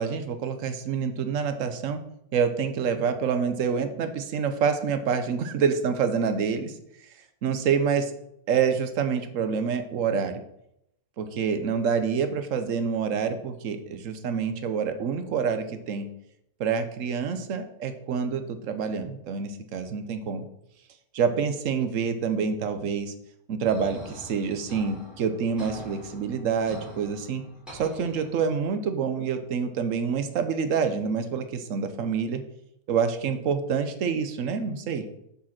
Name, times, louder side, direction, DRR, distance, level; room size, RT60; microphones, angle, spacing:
voice 1, 0.0-2.0 2.3-6.7 7.4-8.1 8.5-10.4 11.2-16.1 16.6-20.5 21.1-23.1 23.5-27.4 27.7-32.4 32.9-35.1, right 6 dB, 60° right, 9 dB, 1.2 m, -27 dB
sound 1, 23.7-28.7, equal, ahead, 3.0 m, -45 dB
7.1 x 5.2 x 5.8 m, 0.79 s
omnidirectional pair, 1.6 m